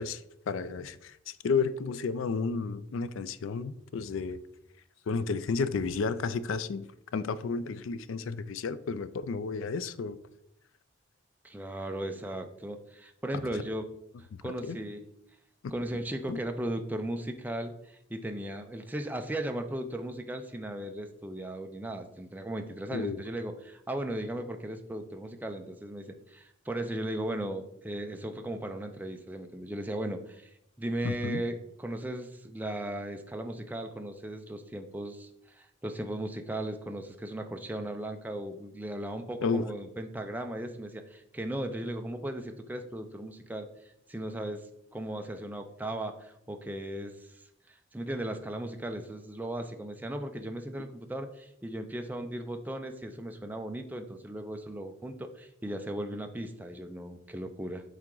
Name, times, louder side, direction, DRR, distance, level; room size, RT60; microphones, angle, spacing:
voice 1, 0.0-4.4 5.1-6.9 7.1-10.2 13.3-13.4 14.3-14.8 16.3-16.4 22.9-23.2 31.0-31.4 39.4-39.7, left 4 dB, 80° left, 0.4 m, -32 dB
voice 2, 11.4-13.9 14.2-15.0 15.7-43.7 44.1-44.7 44.9-57.8, right 1 dB, 10° right, 0.4 m, -37 dB
7.4 x 3.8 x 3.8 m
head